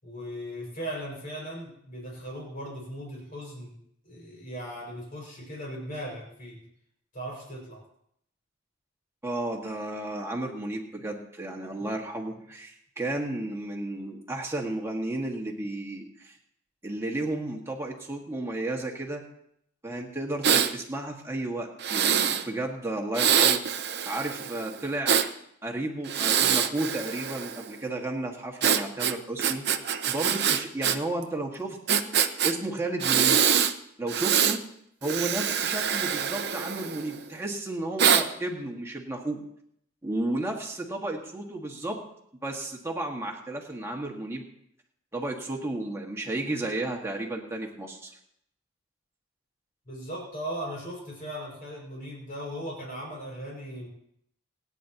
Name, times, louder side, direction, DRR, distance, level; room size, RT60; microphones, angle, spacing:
voice 1, 0.0-3.7 4.0-6.6 7.1-7.8 49.9-53.9, equal, 40° left, -3 dB, 5.5 m, -38 dB
voice 2, 9.2-16.4 16.8-19.2 19.8-25.2 25.6-29.7 30.1-32.0 32.4-33.4 34.0-34.6 35.0-39.4 40.0-42.0 42.4-44.5 45.1-48.1, right 2 dB, 15° right, 0 dB, 1.7 m, -33 dB
Breathing, 20.4-20.7 21.8-22.4 23.1-25.3 26.0-27.7 28.6-31.0 31.2-31.3 31.9-32.5 33.0-33.7 34.1-34.6 35.0-37.2 38.0-38.2, right 8 dB, 50° right, 0.7 m, -24 dB
27.0 x 9.5 x 2.9 m, 0.72 s
head